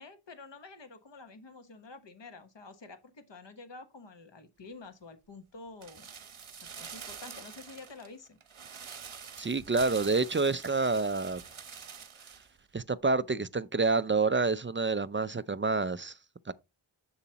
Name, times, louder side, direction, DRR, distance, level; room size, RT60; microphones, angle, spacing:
voice 1, 0.0-6.1 6.8-8.4, left 3 dB, 60° left, 1.3 m, -49 dB
sound 1, 5.8-12.5 12.8-12.9, right 6 dB, 85° right, 1.1 m, -46 dB
voice 2, 9.4-11.4 12.7-16.2 16.5-16.6, right 3 dB, 25° right, 0.4 m, -28 dB
7.1 x 6.9 x 2.9 m
wide cardioid pair, 60°, 48 cm